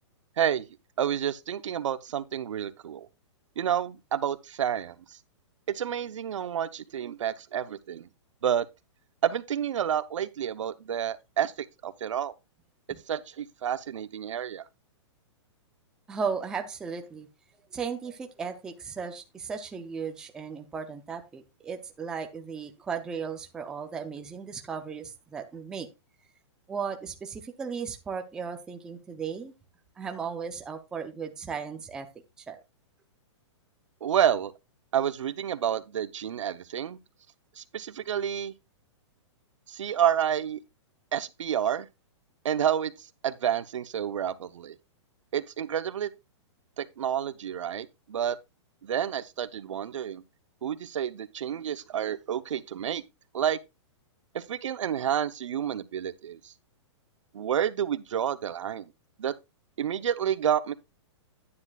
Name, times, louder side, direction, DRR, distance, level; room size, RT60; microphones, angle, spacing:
voice 1, 0.4-0.7 1.0-3.1 3.6-5.2 5.7-8.1 8.4-8.7 9.2-12.3 13.1-14.6 34.0-34.5 34.9-37.0 37.6-38.5 39.7-40.6 41.1-41.9 42.4-44.8 45.3-46.1 46.8-48.4 48.8-50.2 50.6-53.0 53.3-53.6 54.3-56.5 57.3-58.9 59.2-59.3 59.8-60.7, right 9 dB, 85° right, 0.8 m, -29 dB
voice 2, 16.1-17.3 17.7-25.9 26.7-29.5 30.0-32.1 32.5-32.6, right 6 dB, 5° right, 0.4 m, -36 dB
9.7 x 9.7 x 2.4 m
hypercardioid pair, 170°, 15 cm